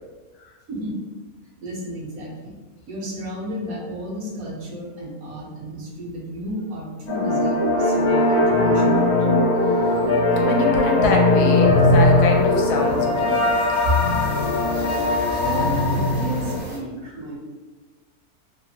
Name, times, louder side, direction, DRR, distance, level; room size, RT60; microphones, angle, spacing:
voice 1, 1.6-2.5 2.9-9.1 13.8-13.9 15.4-17.4, equal, 70° right, -4 dB, 1.2 m, -32 dB
sound 1, 7.1-16.6, left 2 dB, 60° left, 1.0 m, -19 dB
sound 2, 8.4-8.5 8.8-9.0 9.3-16.8, right 1 dB, 50° right, 0.6 m, -38 dB
voice 2, 10.4-13.5, left 3 dB, 80° left, 1 dB, 1.1 m, -25 dB
2.9 x 2.4 x 2.7 m, 1.3 s
omnidirectional pair, 1.6 m